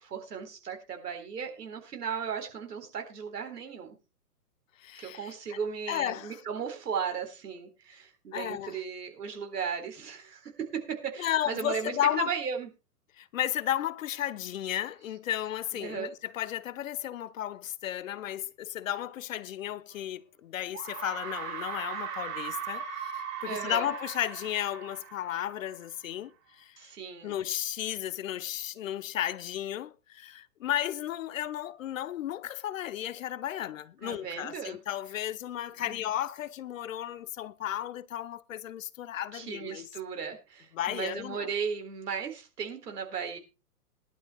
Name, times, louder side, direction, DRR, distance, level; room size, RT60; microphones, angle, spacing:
voice 1, 0.0-4.0 5.0-12.7 15.7-16.1 23.5-23.9 26.8-27.4 34.0-34.8 35.9-36.0 39.3-43.4, right 6 dB, 75° right, 3.8 m, -36 dB
voice 2, 4.8-5.6 5.9-6.4 8.3-8.8 11.2-12.3 13.2-26.8 27.2-39.9 40.7-41.5, left 12 dB, 55° left, 0.8 m, -34 dB
sound 1, 19.9-20.0 20.7-25.9, right 8 dB, 50° right, 7.0 m, -39 dB
21.5 x 11.5 x 2.2 m
hypercardioid pair, 135°, 48 cm